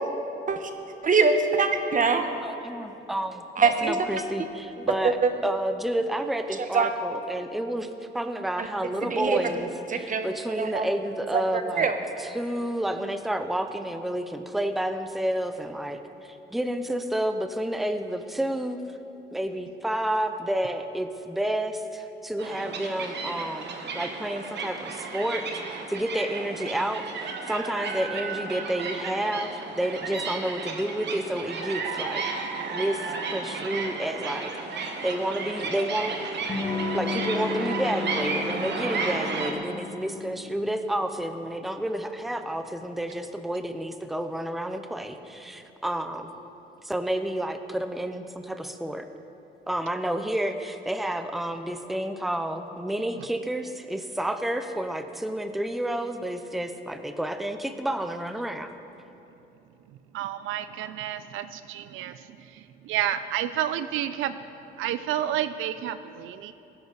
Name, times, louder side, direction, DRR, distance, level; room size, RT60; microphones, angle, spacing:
voice 1, 1.0-2.2 3.6-3.9 5.0-5.3 6.7-6.9 8.6-8.7 9.0-9.4 9.9-10.2 10.6-10.9 11.3-12.0, right 5 dB, 40° right, 6 dB, 1.2 m, -23 dB
voice 2, 2.4-7.9 8.1-11.9 12.2-18.8 19.3-32.3 32.7-36.2 36.9-46.3 46.8-49.1 49.7-58.8, right 1 dB, ahead, 8 dB, 0.7 m, -30 dB
sound 1, 22.4-39.5, right 4 dB, 60° right, 1.4 m, -33 dB
Electric guitar / Strum, 36.5-41.9, left 4 dB, 30° left, 1.8 m, -34 dB
voice 3, 60.1-62.1 62.9-64.3 64.8-66.5, right 11 dB, 85° right, 12 dB, 0.4 m, -30 dB
18.0 x 10.5 x 4.0 m, 2.9 s
cardioid pair, 90°, 20 cm